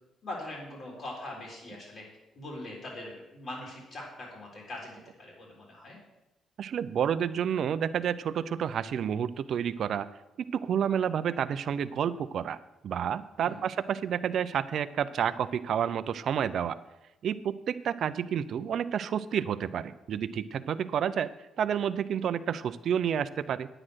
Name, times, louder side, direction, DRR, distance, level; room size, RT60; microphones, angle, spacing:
voice 1, 0.2-2.0 2.3-4.9 5.2-6.0 13.4-13.7, left 1 dB, 55° left, -3 dB, 3.8 m, -42 dB
voice 2, 6.6-10.1 10.5-12.6 12.8-16.8 17.2-21.3 21.6-23.7, right 8 dB, 65° right, 12 dB, 0.5 m, -30 dB
9.8 x 8.8 x 6.4 m, 0.96 s
cardioid pair, 90°, 0 cm